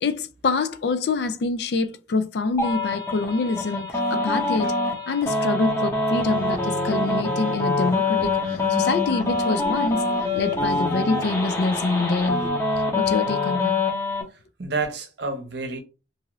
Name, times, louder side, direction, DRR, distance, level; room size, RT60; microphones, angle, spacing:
voice 1, 0.0-4.7 5.1-8.4 8.7-10.0 10.3-12.4 12.9-13.8, left 3 dB, 65° left, 0.4 m, -25 dB
sound 1, 2.6-14.2, left 3 dB, 15° left, 0.6 m, -25 dB
sound 2, 6.1-12.5, right 1 dB, 50° right, 0.9 m, -38 dB
voice 2, 14.3-15.8, right 3 dB, 70° right, 0.7 m, -30 dB
2.6 x 2.4 x 3.0 m
head